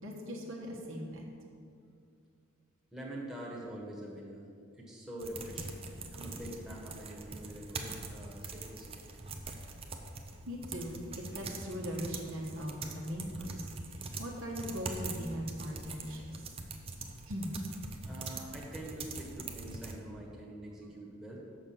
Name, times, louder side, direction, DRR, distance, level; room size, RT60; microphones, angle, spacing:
voice 1, 0.0-1.2 10.4-16.5 17.3-17.6, equal, 65° right, -1 dB, 1.3 m, -40 dB
voice 2, 2.9-4.4 4.8-9.0 18.1-21.4, right 1 dB, 5° right, -5 dB, 1.4 m, -45 dB
sound 1, 5.2-20.0, right 3 dB, 25° right, 0.6 m, -43 dB
6.8 x 6.1 x 7.1 m, 2.4 s
head